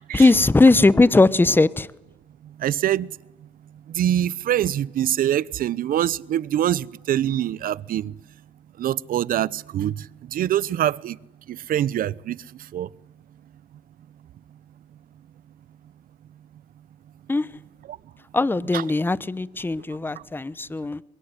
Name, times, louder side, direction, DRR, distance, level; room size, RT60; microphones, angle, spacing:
voice 1, 0.1-1.9 17.3-17.5 18.3-21.0, left 3 dB, 10° left, 1.0 m, -19 dB
voice 2, 2.6-3.1 3.9-8.1 8.8-9.9 10.3-11.2 11.7-12.4 12.7-12.9 18.7-18.8, right 11 dB, 55° right, 0.9 m, -24 dB
24.0 x 22.5 x 9.9 m
cardioid pair, 110°, 17 cm